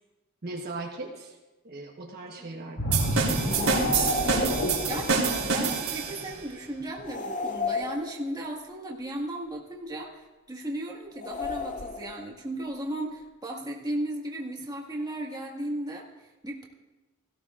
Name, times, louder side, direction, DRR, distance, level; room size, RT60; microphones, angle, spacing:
voice 1, 0.4-1.3 1.6-3.7, right 2 dB, 50° right, 0 dB, 1.1 m, -39 dB
voice 2, 2.4-2.7 4.2-4.6 4.9-16.0 16.4-16.6, right 1 dB, 20° right, -2 dB, 1.7 m, -35 dB
sound 1, 2.8-6.4 6.8-7.0, equal, 80° left, 2.6 m, -30 dB
sound 2, 2.9-6.3, right 5 dB, 90° right, 3.0 m, -27 dB
sound 3, 3.5-4.8 7.1-8.5 11.2-12.3, left 2 dB, 35° left, 0.5 m, -32 dB
17.0 x 15.0 x 2.5 m, 1.1 s
head